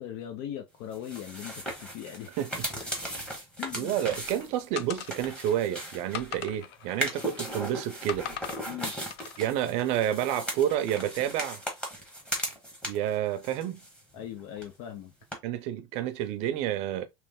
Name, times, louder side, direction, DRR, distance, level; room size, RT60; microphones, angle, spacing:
voice 1, 0.0-2.3 3.0-3.1 3.6-4.0 8.7-8.9 14.1-15.1, left 11 dB, 55° left, 0.7 m, -39 dB
sound 1, 0.9-6.4 6.9-13.1 13.4-14.3 14.6-14.7 15.3-15.4, equal, 5° left, 1.1 m, -37 dB
voice 2, 3.7-8.3 9.4-11.6 12.8-13.8 15.4-17.1, right 11 dB, 50° right, 0.6 m, -29 dB
sound 2, 4.8-5.5 6.1-7.6 8.1-8.6 9.1-9.5, left 10 dB, 85° left, 0.5 m, -40 dB
3.2 x 3.0 x 3.5 m
cardioid pair, 160°, 13 cm